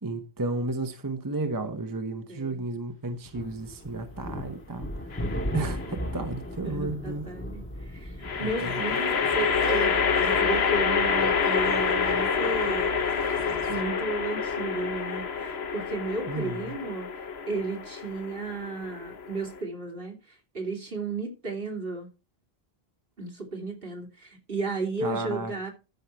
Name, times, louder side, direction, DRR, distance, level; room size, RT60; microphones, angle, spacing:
voice 1, 0.0-4.9 5.5-7.3 8.4-8.7 16.3-16.6 25.0-25.5, right 2 dB, 20° right, 1.0 m, -32 dB
voice 2, 2.3-2.6 6.6-12.9 13.7-17.1 17.5-22.1 23.2-25.7, right 3 dB, 60° right, 3.1 m, -34 dB
sound 1, 3.3-13.9, equal, 10° left, 1.7 m, -38 dB
sound 2, 5.1-5.7 8.2-19.6, left 6 dB, 80° left, 1.3 m, -27 dB
sound 3, 8.6-13.8, right 2 dB, 80° right, 1.8 m, -40 dB
13.5 x 5.7 x 4.5 m
omnidirectional pair, 1.0 m